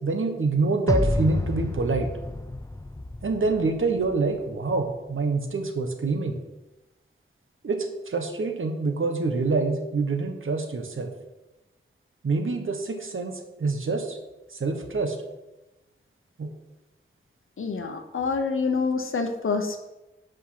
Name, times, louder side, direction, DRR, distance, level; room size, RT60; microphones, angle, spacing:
voice 1, 0.0-2.1 3.2-6.4 7.6-11.1 12.2-14.2 14.5-15.2 16.4-16.5, right 3 dB, 80° right, 5 dB, 1.2 m, -26 dB
sound 1, 0.9-4.2, left 2 dB, 15° left, 0.5 m, -29 dB
voice 2, 17.6-19.9, left 4 dB, 85° left, 5 dB, 0.8 m, -27 dB
8.7 x 5.2 x 5.8 m, 1.0 s
wide cardioid pair, 90°, 21 cm